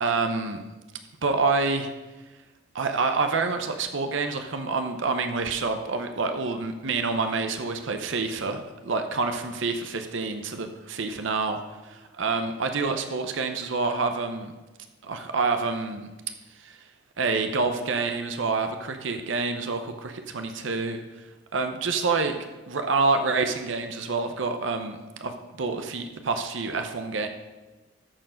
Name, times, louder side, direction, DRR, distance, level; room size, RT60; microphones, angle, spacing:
voice 1, 0.0-0.6 1.2-1.9 2.7-14.5 15.0-16.1 16.6-16.8 17.2-21.0 21.5-22.4 22.7-25.3 25.6-27.3, right 4 dB, 65° right, 6 dB, 0.7 m, -27 dB
13.5 x 4.6 x 6.2 m, 1.2 s
head